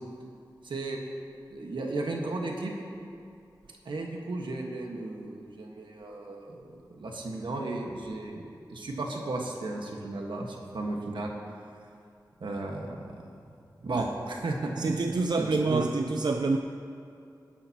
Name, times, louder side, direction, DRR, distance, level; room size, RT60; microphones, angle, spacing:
voice 1, 0.6-1.0 1.5-2.7 3.8-8.4 8.7-11.3 12.4-13.3 13.8-15.9, right 2 dB, 85° right, 0 dB, 1.5 m, -34 dB
voice 2, 14.8-16.6, right 3 dB, 60° right, 4 dB, 0.5 m, -27 dB
19.0 x 11.0 x 2.9 m, 2.5 s
wide cardioid pair, 60°, 8 cm